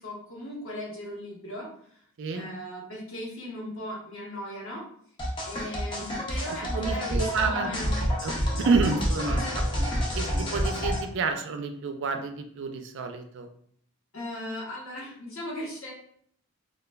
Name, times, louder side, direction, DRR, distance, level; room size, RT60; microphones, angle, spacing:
voice 1, 0.0-2.0 2.3-4.8 5.5-7.2 7.5-8.0 9.3-9.6 14.1-15.9, left 1 dB, 65° left, -3 dB, 1.0 m, -38 dB
voice 2, 2.2-2.5 6.7-7.7 8.0-8.3 8.6-9.4 10.1-13.5, right 4 dB, 55° right, 6 dB, 0.3 m, -29 dB
sound 1, 5.2-11.0, equal, 20° left, 0.5 m, -28 dB
3.2 x 2.2 x 2.2 m, 0.63 s
head